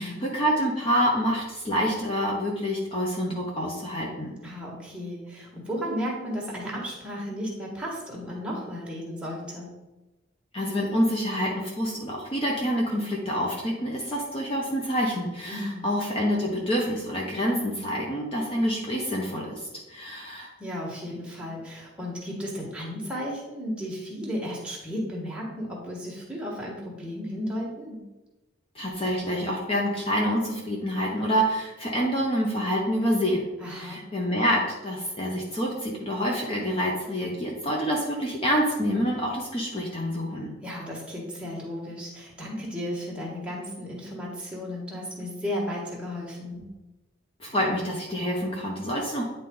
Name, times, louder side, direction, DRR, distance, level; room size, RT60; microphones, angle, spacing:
voice 1, 0.0-4.3 10.5-20.5 28.7-33.4 33.7-40.5 47.4-49.2, equal, 30° left, -2 dB, 0.9 m, -27 dB
voice 2, 4.4-9.7 15.5-15.9 20.6-28.0 33.6-34.0 40.6-46.7, equal, 5° right, -4 dB, 1.6 m, -34 dB
9.6 x 4.0 x 3.9 m, 1.1 s
head